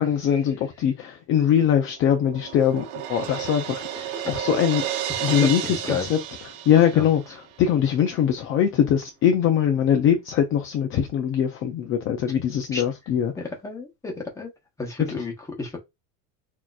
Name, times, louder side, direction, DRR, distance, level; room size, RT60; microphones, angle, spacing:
voice 1, 0.0-4.8 5.2-6.2 6.7-13.3 15.1-15.2, left 9 dB, 35° left, 0.5 m, -22 dB
Crash cymbal, 1.7-7.4, right 10 dB, 90° right, 1.0 m, -32 dB
voice 2, 5.1-6.1 6.9-7.1 12.7-12.8 13.4-14.5 14.8-15.3 15.6-15.7, left 3 dB, 10° left, 1.0 m, -31 dB
6.2 x 2.9 x 2.4 m
cardioid pair, 175°, 36 cm